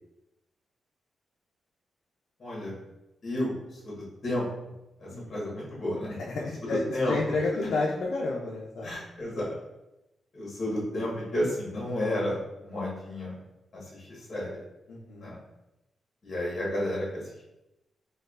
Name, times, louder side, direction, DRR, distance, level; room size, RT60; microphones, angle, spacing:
voice 1, 2.4-2.8 3.2-4.4 5.0-6.2 6.6-7.1 7.6-7.7 8.8-9.5 10.3-13.4 13.7-14.6 15.1-15.4 16.2-17.4, left 1 dB, 45° left, -5 dB, 1.3 m, -32 dB
voice 2, 6.2-9.0 14.9-15.3, left 3 dB, 85° left, -4 dB, 0.5 m, -31 dB
4.4 x 2.3 x 2.4 m, 0.94 s
wide cardioid pair, 120°, 0 cm